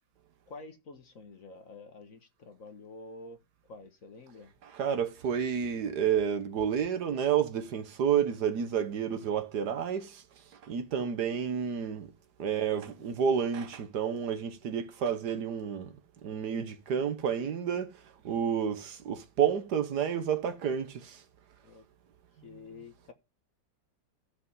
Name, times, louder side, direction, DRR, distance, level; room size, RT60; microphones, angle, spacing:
voice 1, 0.5-3.4 3.7-4.5 12.4-13.2 21.6-21.8 22.4-23.1, left 3 dB, 45° left, 1.6 m, -49 dB
voice 2, 4.6-10.2 10.6-12.1 12.4-21.2, right 8 dB, 60° right, 1.5 m, -30 dB
15.0 x 5.3 x 5.4 m
omnidirectional pair, 2.2 m